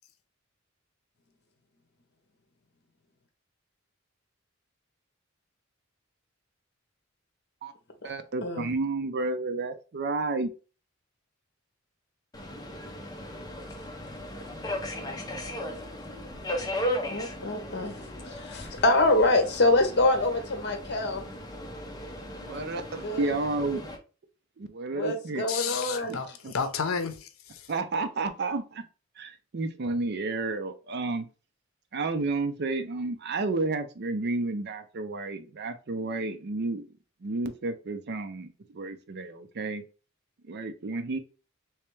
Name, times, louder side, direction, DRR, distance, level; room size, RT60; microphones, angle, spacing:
voice 1, 8.0-10.5 22.4-23.8 24.6-25.5 26.1-26.2 26.4-26.5 27.7-28.8 29.2-31.3 31.9-36.9 37.2-39.8 40.4-41.2, right 3 dB, 55° right, 0.5 m, -31 dB
Subway metro underground, 12.3-24.0, left 1 dB, 20° left, 0.7 m, -37 dB
voice 2, 17.1-18.0 18.2-21.3 23.0-23.3 24.9-26.2, left 2 dB, 55° left, 0.9 m, -25 dB
voice 3, 25.5-27.7, left 6 dB, 80° left, 0.6 m, -32 dB
3.3 x 3.2 x 3.1 m
head